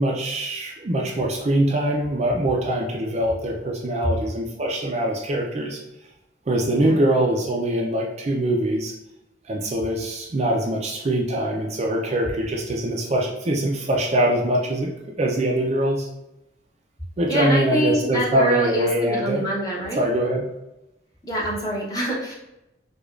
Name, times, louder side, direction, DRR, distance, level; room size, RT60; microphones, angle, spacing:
voice 1, 0.0-5.8 6.5-8.9 9.5-14.9 15.2-16.1 17.2-19.5 20.0-20.4, right 1 dB, 35° right, 0 dB, 0.4 m, -23 dB
voice 2, 17.3-20.0 21.3-22.3, equal, 20° left, -4 dB, 0.8 m, -25 dB
4.9 x 2.3 x 2.4 m, 0.90 s
head